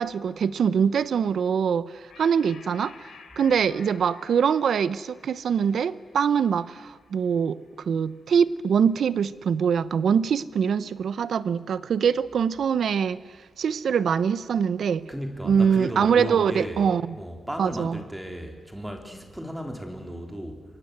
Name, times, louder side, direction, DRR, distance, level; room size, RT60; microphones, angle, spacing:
voice 1, 0.0-2.9 3.4-7.6 7.9-13.2 13.6-15.1 15.4-17.0 17.6-18.0, right 7 dB, 75° right, 17 dB, 0.8 m, -23 dB
sound 1, 2.1-9.0, left 6 dB, 90° left, 3.5 m, -52 dB
voice 2, 15.1-16.9 17.2-20.6, equal, 5° right, 4 dB, 3.4 m, -34 dB
27.5 x 23.5 x 8.1 m, 1.4 s
wide cardioid pair, 125°, 0 cm